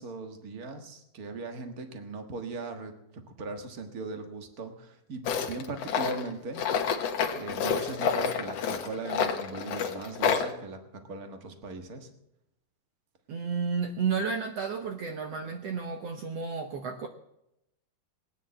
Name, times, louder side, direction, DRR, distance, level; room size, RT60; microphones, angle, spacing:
voice 1, 0.0-6.7 7.3-12.1, right 3 dB, 50° right, 6 dB, 1.0 m, -39 dB
Tools, 5.2-10.5, left 7 dB, 60° left, 1.9 m, -29 dB
voice 2, 13.3-17.1, right 5 dB, 70° right, 5 dB, 1.5 m, -32 dB
18.5 x 10.0 x 7.5 m, 0.83 s
omnidirectional pair, 4.0 m